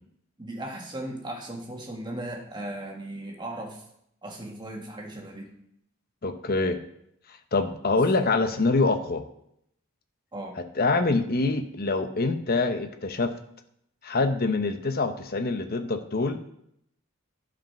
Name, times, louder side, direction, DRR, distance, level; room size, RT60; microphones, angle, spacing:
voice 1, 0.4-3.8 4.2-5.5 10.3-10.6, right 1 dB, 20° right, 0 dB, 1.7 m, -37 dB
voice 2, 6.2-6.8 7.5-9.2 10.6-13.3 14.0-16.4, left 3 dB, 45° left, 8 dB, 0.8 m, -25 dB
11.0 x 5.1 x 5.8 m, 0.73 s
head